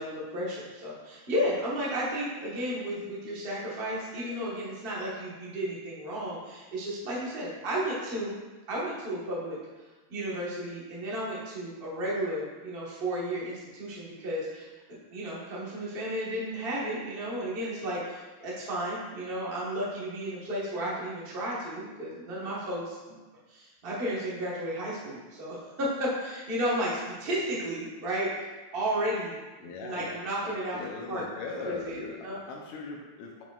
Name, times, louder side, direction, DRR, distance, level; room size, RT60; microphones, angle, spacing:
voice 1, 0.0-8.3 8.7-9.6 10.1-14.7 15.1-23.2 23.5-28.4 28.7-29.3 29.6-30.8 31.1-31.2 31.6-32.4, equal, 75° right, -6 dB, 0.5 m, -33 dB
voice 2, 29.6-32.2 32.5-33.4, left 4 dB, 80° left, -1 dB, 1.9 m, -40 dB
8.9 x 4.6 x 2.4 m, 1.2 s
omnidirectional pair, 3.4 m